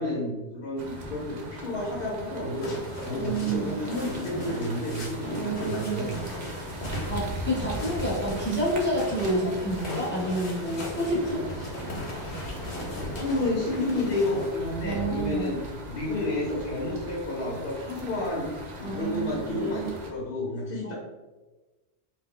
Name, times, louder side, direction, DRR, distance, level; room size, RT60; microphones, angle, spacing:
voice 1, 0.0-6.4 13.0-18.5 18.8-20.9, left 1 dB, 65° left, -6 dB, 0.9 m, -30 dB
sound 1, 0.8-20.1, equal, 55° right, 0.5 m, -39 dB
sound 2, 2.6-14.5, equal, 85° left, 1.1 m, -38 dB
voice 2, 3.2-3.8 5.4-6.1 7.1-11.4 14.8-15.5 18.8-19.9 20.8-20.9, right 1 dB, 15° left, -6 dB, 0.5 m, -29 dB
2.3 x 2.0 x 3.7 m, 1.2 s
omnidirectional pair, 1.1 m